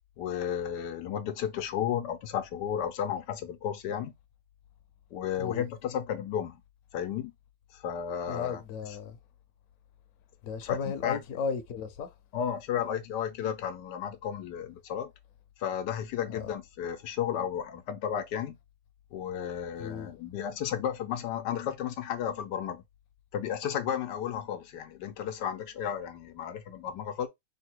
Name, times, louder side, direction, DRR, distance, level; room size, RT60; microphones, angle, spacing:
voice 1, 0.2-4.1 5.1-6.6 6.9-7.3 7.7-8.6 10.6-10.8 11.0-11.2 12.3-15.1 15.6-18.5 19.1-22.8 23.3-27.3, left 9 dB, 80° left, 1.3 m, -33 dB
voice 2, 8.3-9.2 10.4-12.1 16.2-16.4 19.8-20.1, left 6 dB, 60° left, 1.1 m, -35 dB
3.6 x 2.6 x 4.4 m
omnidirectional pair, 1.8 m